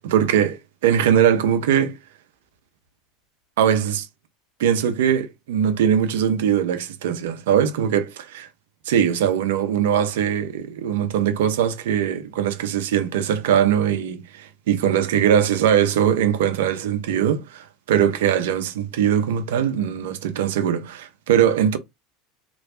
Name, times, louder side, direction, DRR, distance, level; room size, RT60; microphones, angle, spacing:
voice 1, 0.1-0.5 0.8-2.0 3.6-4.1 4.6-8.5 8.9-21.8, right 9 dB, 70° right, 0.7 m, -21 dB
3.3 x 3.0 x 2.6 m
hypercardioid pair, 80°, 0 cm